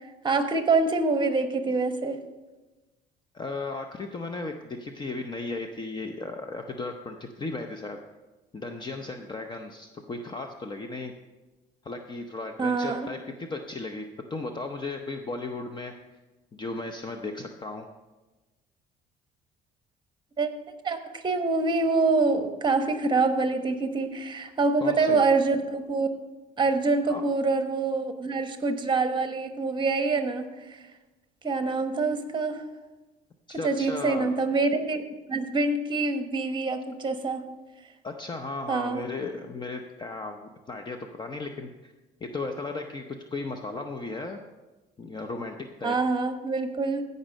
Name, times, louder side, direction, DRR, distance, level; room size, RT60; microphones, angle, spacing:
voice 1, 0.2-2.2 12.6-13.1 20.4-20.5 20.8-26.1 26.6-30.8 31.4-32.6 33.6-37.4 38.7-39.0 45.8-47.0, right 3 dB, 25° right, 8 dB, 1.1 m, -25 dB
voice 2, 3.3-8.0 8.5-11.1 11.8-15.9 16.5-17.9 24.8-25.2 27.1-27.2 33.5-34.4 38.0-41.9 42.3-43.0 43.3-44.4 45.0-46.0, left 3 dB, 25° left, 5 dB, 0.7 m, -35 dB
15.0 x 5.4 x 5.2 m, 1.2 s
cardioid pair, 110°, 17 cm